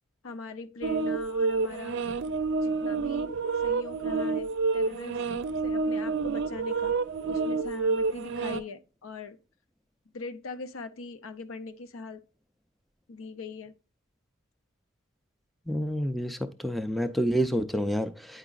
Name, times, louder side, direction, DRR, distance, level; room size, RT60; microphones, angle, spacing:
voice 1, 0.2-2.2 2.6-3.3 3.6-6.9 7.3-9.4 10.1-12.2 13.1-13.7, left 3 dB, 75° left, 0.6 m, -41 dB
sound 1, 0.8-8.6, right 4 dB, 60° right, 0.5 m, -29 dB
voice 2, 15.7-18.4, equal, ahead, 0.4 m, -28 dB
8.9 x 4.8 x 2.3 m
head